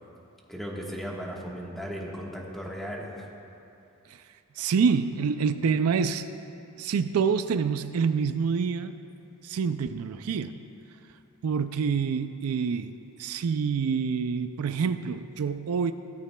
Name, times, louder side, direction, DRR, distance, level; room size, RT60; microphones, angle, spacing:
voice 1, 0.5-3.3, equal, ahead, -2 dB, 1.3 m, -36 dB
voice 2, 4.6-6.3 6.8-8.9 9.4-10.6 11.4-15.9, right 6 dB, 70° right, 11 dB, 0.4 m, -27 dB
16.5 x 14.0 x 2.3 m, 2.7 s
head